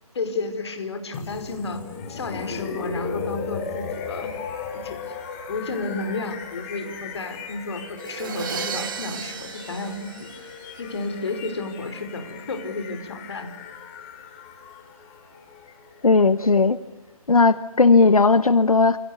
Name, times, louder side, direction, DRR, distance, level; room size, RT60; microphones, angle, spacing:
voice 1, 0.1-1.8 2.1-4.3 4.8-5.2 5.5-10.5 10.8-13.5, left 3 dB, 45° left, 7 dB, 4.9 m, -32 dB
sound 1, 1.1-17.0, left 5 dB, 20° left, 4.3 m, -37 dB
Crash cymbal, 8.0-10.9, right 7 dB, 35° right, 2.3 m, -34 dB
voice 2, 16.0-16.8 17.3-19.0, left 3 dB, 70° left, 14 dB, 1.2 m, -16 dB
29.0 x 28.0 x 6.8 m, 0.95 s
figure-of-eight pair, 145°, 19 cm